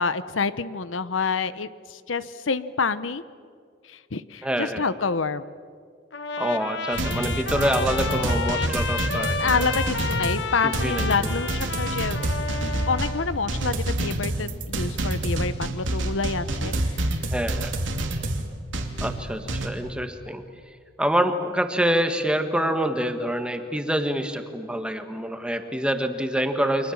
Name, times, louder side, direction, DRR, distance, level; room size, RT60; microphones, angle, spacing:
voice 1, 0.0-3.2 3.9-5.5 9.4-12.2 12.6-17.1, left 4 dB, 85° left, 15 dB, 0.9 m, -28 dB
voice 2, 4.4-4.9 6.4-9.8 10.6-11.3 17.3-17.7 19.0-20.4 21.0-26.9, right 1 dB, 5° right, 7 dB, 1.6 m, -26 dB
Trumpet, 6.1-13.3, left 4 dB, 65° left, 1.4 m, -31 dB
sound 1, 6.9-19.7, right 1 dB, 80° right, 2.8 m, -28 dB
29.5 x 25.0 x 7.3 m, 2.2 s
head